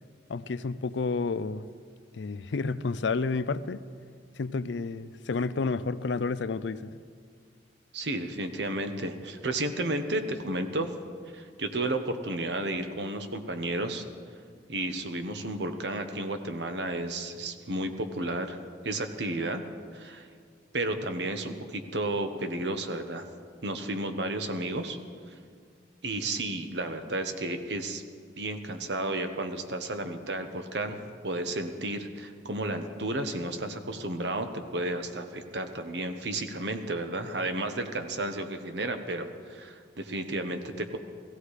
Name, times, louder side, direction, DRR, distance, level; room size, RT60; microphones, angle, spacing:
voice 1, 0.3-1.7 2.1-3.8 4.4-7.0, left 4 dB, 75° left, 15 dB, 0.5 m, -30 dB
voice 2, 7.9-10.9 11.3-14.0 14.7-18.6 18.8-19.6 19.9-20.3 20.7-23.2 23.6-25.0 26.0-28.0 28.3-41.0, right 2 dB, 65° right, 7 dB, 1.2 m, -32 dB
16.5 x 16.0 x 4.9 m, 2.1 s
head